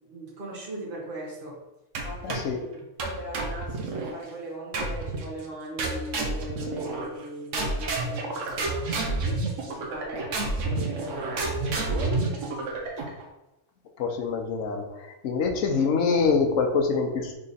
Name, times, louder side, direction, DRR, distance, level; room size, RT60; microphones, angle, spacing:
voice 1, 0.1-1.6 2.0-2.9 3.1-9.4 9.7-12.6, right 1 dB, 45° right, -3 dB, 1.4 m, -39 dB
sound 1, 1.9-2.6 3.0-4.2 4.7-5.3 5.8-7.2 7.5-13.2, right 2 dB, 80° right, 1.1 m, -30 dB
voice 2, 2.2-2.6 14.0-17.3, left 5 dB, 85° left, 4 dB, 1.1 m, -25 dB
3.7 x 3.3 x 4.0 m, 0.97 s
omnidirectional pair, 1.3 m